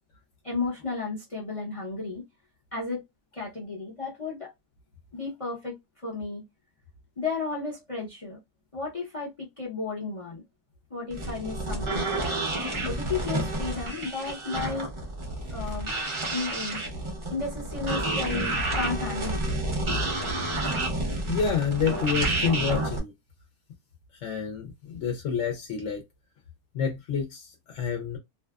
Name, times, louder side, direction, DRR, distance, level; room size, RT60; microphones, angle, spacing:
voice 1, 0.4-2.2 2.7-3.0 3.3-4.5 5.1-5.8 6.0-6.4 7.2-8.4 8.7-10.4 10.9-12.4 12.8-14.9 15.5-15.9 16.3-16.8 17.3-19.4, left 4 dB, 45° left, 0.4 m, -33 dB
sound 1, 11.1-23.0, right 2 dB, 45° right, 0.3 m, -30 dB
voice 2, 21.3-23.1 24.2-26.0 26.7-28.2, left 7 dB, 60° left, 0.9 m, -28 dB
2.6 x 2.3 x 2.3 m
omnidirectional pair, 1.7 m